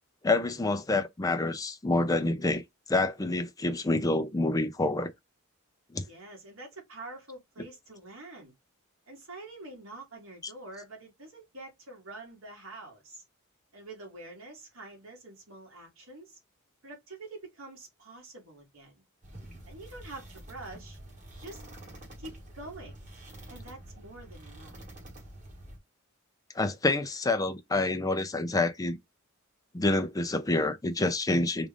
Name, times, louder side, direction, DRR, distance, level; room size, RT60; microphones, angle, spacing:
voice 1, 0.2-2.6 2.9-5.1 5.9-6.0 26.5-29.0 29.7-31.7, left 2 dB, 15° left, 0.5 m, -27 dB
voice 2, 6.1-8.5 9.1-13.2 13.7-16.4 16.8-19.0 19.7-21.0 21.4-21.6 22.2-23.0 23.5-24.8, right 2 dB, 70° right, 2.0 m, -46 dB
sound 1, 19.2-25.8, right 1 dB, 35° right, 1.6 m, -47 dB
3.7 x 2.5 x 3.4 m
head